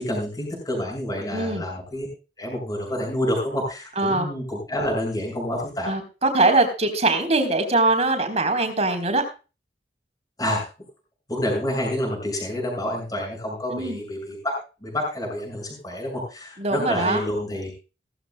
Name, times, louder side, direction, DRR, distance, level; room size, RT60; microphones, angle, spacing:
voice 1, 0.0-2.1 2.4-5.9 10.4-10.6 11.3-14.6 14.8-17.7, left 1 dB, 20° left, -1 dB, 6.7 m, -28 dB
voice 2, 1.3-1.6 4.0-4.3 5.9-9.2 13.7-14.0 16.6-17.2, right 2 dB, 40° right, 6 dB, 3.7 m, -22 dB
18.0 x 14.0 x 2.2 m, 0.32 s
head